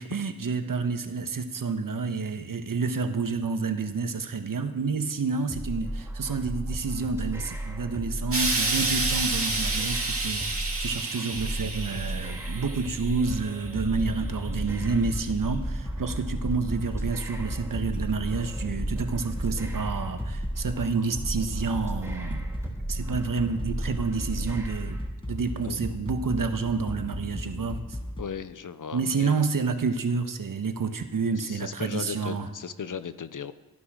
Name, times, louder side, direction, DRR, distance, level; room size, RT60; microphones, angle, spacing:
voice 1, 0.0-22.5 22.9-25.0 25.3-28.0 28.9-32.5, right 4 dB, 60° right, 7 dB, 1.5 m, -29 dB
sound 1, 5.5-25.1, right 1 dB, 5° right, 3.9 m, -34 dB
Explosion, 8.3-13.6 14.5-14.6, right 3 dB, 35° right, 2.6 m, -29 dB
sound 2, 13.3-28.2, left 1 dB, 15° left, 1.6 m, -36 dB
voice 2, 28.2-29.4 31.4-33.5, left 7 dB, 55° left, 13 dB, 0.9 m, -36 dB
14.5 x 9.9 x 6.5 m, 1.1 s
supercardioid pair, 40°, 37 cm